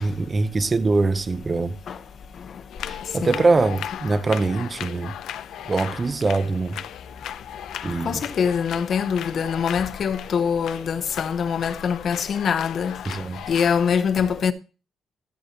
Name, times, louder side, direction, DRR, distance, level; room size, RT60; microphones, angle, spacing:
voice 1, 0.0-1.8 2.8-5.2 5.7-6.8 7.8-8.2 13.1-13.4, right 3 dB, 30° right, 0.7 m, -23 dB
sound 1, 2.7-13.9, left 10 dB, 80° left, 0.6 m, -37 dB
voice 2, 8.0-12.9 13.5-14.5, left 7 dB, 55° left, 1.0 m, -24 dB
14.0 x 7.6 x 2.9 m
cardioid pair, 90°, 0 cm